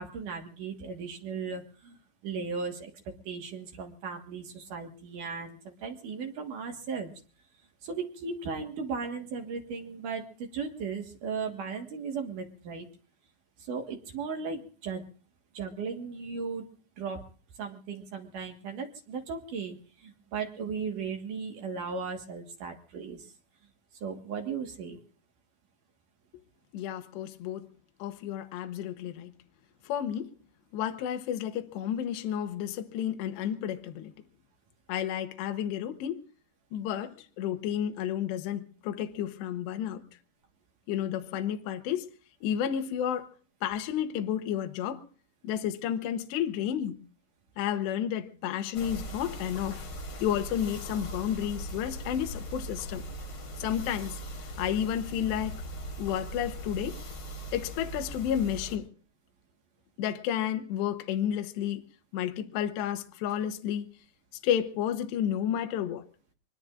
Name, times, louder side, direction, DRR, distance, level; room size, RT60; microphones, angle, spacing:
voice 1, 0.0-2.0 2.2-2.9 3.3-7.1 7.8-12.9 13.6-15.0 15.5-16.6 17.0-17.2 17.6-23.3 24.0-25.0, right 5 dB, 55° right, 2.5 m, -36 dB
voice 2, 26.7-27.7 28.0-29.3 29.9-30.3 30.7-34.1 34.9-36.2 36.7-40.0 40.9-42.1 42.4-43.3 43.6-45.0 45.4-47.0 47.6-49.9 50.2-53.0 53.6-54.2 54.6-55.6 56.0-57.0 57.5-58.9 60.0-61.8 62.1-63.9 64.4-66.0, left 10 dB, 75° left, 3.0 m, -31 dB
sound 1, 48.7-58.8, right 1 dB, 50° left, 4.5 m, -39 dB
24.5 x 21.0 x 2.5 m
omnidirectional pair, 5.5 m